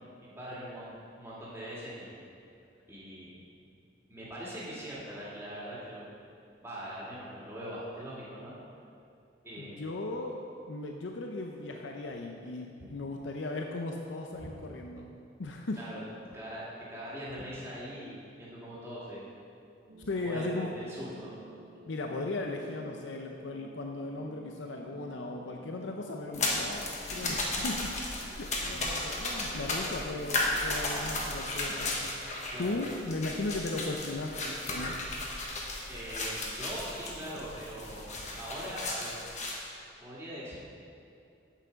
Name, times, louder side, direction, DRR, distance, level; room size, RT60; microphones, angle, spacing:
voice 1, 0.4-2.2 2.9-3.4 4.1-6.1 6.6-8.5 9.4-10.0 12.8-12.9 14.4-14.6 15.8-16.0 16.3-19.3 20.1-21.4 28.7-28.9 32.5-32.9 35.9-39.2 40.0-40.6, equal, 15° right, -7 dB, 2.1 m, -42 dB
voice 2, 9.6-10.4 10.7-15.8 20.1-20.7 21.8-27.9 28.4-35.0, left 2 dB, 80° left, 1 dB, 0.6 m, -37 dB
sound 1, 19.9-31.6, right 2 dB, 70° right, 0.9 m, -53 dB
sound 2, 26.3-39.6, left 2 dB, 40° left, 1.2 m, -35 dB
8.4 x 7.2 x 5.1 m, 2.6 s
head